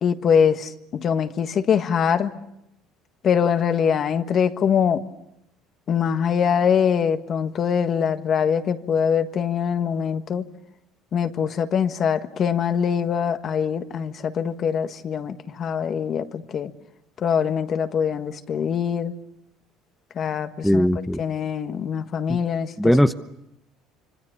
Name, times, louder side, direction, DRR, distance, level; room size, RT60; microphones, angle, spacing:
voice 1, 0.0-2.3 3.2-5.0 5.9-10.4 11.1-16.7 17.2-19.1 20.1-20.9 21.2-22.9, left 7 dB, 45° left, 8 dB, 1.6 m, -23 dB
voice 2, 20.6-21.2 22.8-23.1, equal, ahead, 8 dB, 1.0 m, -18 dB
26.5 x 26.0 x 6.9 m, 0.81 s
supercardioid pair, 105°, 0 cm